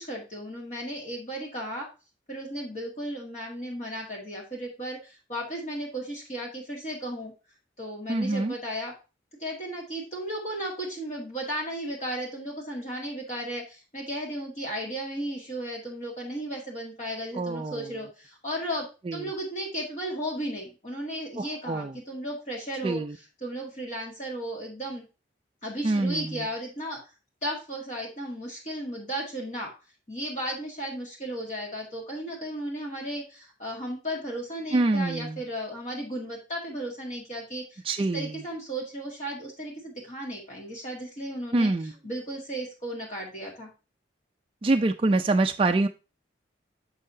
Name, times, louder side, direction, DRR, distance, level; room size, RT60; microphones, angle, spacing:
voice 1, 0.0-1.9 2.3-7.3 7.8-8.9 9.4-23.0 23.4-25.0 25.6-27.0 27.4-29.7 30.1-37.8 38.1-41.7 42.0-43.7, right 1 dB, 40° left, -2 dB, 1.8 m, -35 dB
voice 2, 8.1-8.5 17.3-18.0 19.1-19.3 21.4-22.0 22.8-23.2 25.8-26.5 34.7-35.4 37.8-38.4 41.5-41.9 44.6-45.9, right 2 dB, 30° right, 5 dB, 0.3 m, -26 dB
6.3 x 5.7 x 2.7 m, 0.31 s
head